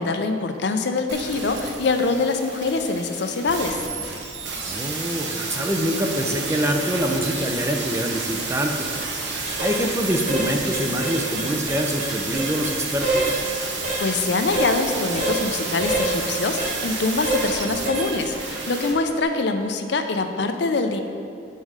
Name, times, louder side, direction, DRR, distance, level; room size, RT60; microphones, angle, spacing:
voice 1, 0.0-3.8 14.0-21.0, left 3 dB, 60° left, 6 dB, 0.5 m, -24 dB
sound 1, 1.1-18.9 19.2-19.3, right 3 dB, 65° right, 1.0 m, -31 dB
voice 2, 4.6-9.2 9.6-13.4, equal, 15° right, 3 dB, 0.5 m, -25 dB
sound 2, 8.9-9.0 9.5-9.7 10.1-10.5 10.7-12.7 13.0-13.4 13.8-14.0 14.5-14.7 15.2-15.4 15.8-16.1 16.6-16.7 17.2-17.4 17.9-18.1 18.5-18.7, right 2 dB, 40° right, 2.0 m, -26 dB
7.5 x 5.5 x 4.8 m, 2.4 s
head